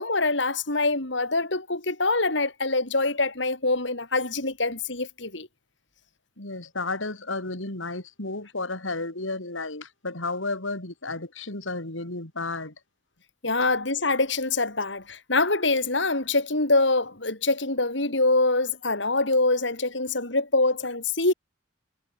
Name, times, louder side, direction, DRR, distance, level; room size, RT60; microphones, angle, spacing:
voice 1, 0.0-5.5 13.4-21.3, left 2 dB, 65° left, 4.9 m, -24 dB
voice 2, 6.4-12.7, left 3 dB, 85° left, 4.2 m, -32 dB
head